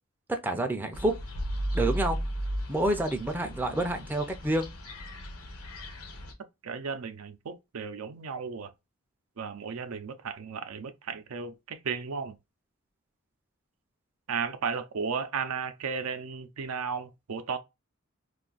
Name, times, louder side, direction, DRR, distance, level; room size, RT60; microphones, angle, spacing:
voice 1, 0.3-1.2 1.7-2.2 2.7-4.7, right 1 dB, 10° right, 0.4 m, -28 dB
sound 1, 0.9-6.3, equal, 85° left, 1.0 m, -35 dB
voice 2, 6.6-8.7 9.4-12.4 14.3-17.6, right 5 dB, 80° right, 0.5 m, -34 dB
2.5 x 2.4 x 3.8 m
head